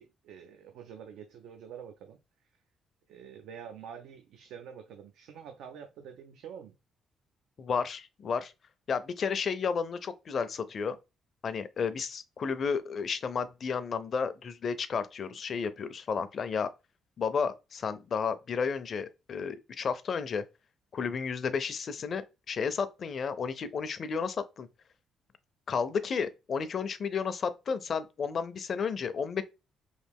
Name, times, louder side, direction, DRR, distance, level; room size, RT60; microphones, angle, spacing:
voice 1, 0.0-2.2 3.1-6.8, right 8 dB, 85° right, 0.4 m, -47 dB
voice 2, 7.6-8.5 8.9-11.0 11.4-16.7 17.2-20.4 20.9-24.7 25.7-29.4, left 6 dB, 50° left, 0.4 m, -32 dB
3.1 x 2.4 x 3.5 m
cardioid pair, 90°, 0 cm